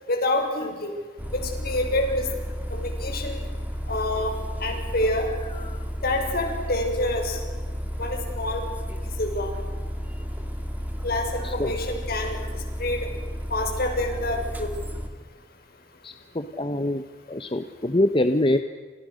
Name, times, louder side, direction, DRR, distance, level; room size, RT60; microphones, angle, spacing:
voice 1, 0.1-0.9 1.3-2.3 2.7-3.4 3.9-4.3 4.6-5.3 6.0-7.4 8.0-8.6 9.2-9.5 11.0-12.4 12.8-13.1 13.5-14.7, left 1 dB, 55° left, 4 dB, 6.4 m, -27 dB
sound 1, 1.2-15.1, equal, 10° right, 2.9 m, -32 dB
voice 2, 11.4-11.7 16.0-17.0 17.3-18.6, left 1 dB, 30° left, 8 dB, 1.2 m, -25 dB
30.0 x 29.0 x 6.6 m, 1.5 s
head